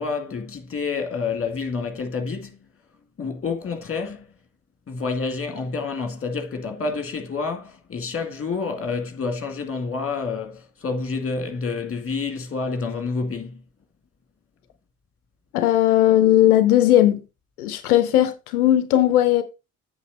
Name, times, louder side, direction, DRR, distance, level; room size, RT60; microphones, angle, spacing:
voice 1, 0.0-2.7 3.2-4.3 4.9-13.6, left 4 dB, 30° left, 2.1 m, -28 dB
voice 2, 15.5-17.2 17.6-19.4, left 12 dB, 85° left, 0.6 m, -17 dB
8.3 x 5.7 x 4.0 m
hypercardioid pair, 45°, 43 cm